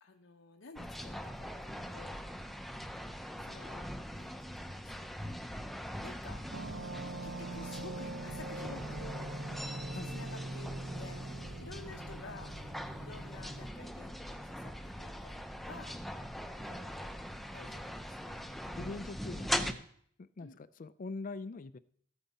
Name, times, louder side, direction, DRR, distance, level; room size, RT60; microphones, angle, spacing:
voice 1, 0.0-2.5 3.4-6.4 7.2-9.2 10.0-16.3 16.6-18.4 20.4-20.6, left 3 dB, 75° left, 3 dB, 0.8 m, -53 dB
sound 1, 0.8-19.7, equal, ahead, 0.6 m, -42 dB
sound 2, 6.5-13.7, right 2 dB, 85° right, 1.2 m, -43 dB
voice 2, 18.8-19.9 20.2-21.8, left 3 dB, 40° left, 15 dB, 0.4 m, -43 dB
14.0 x 9.0 x 4.2 m, 0.64 s
head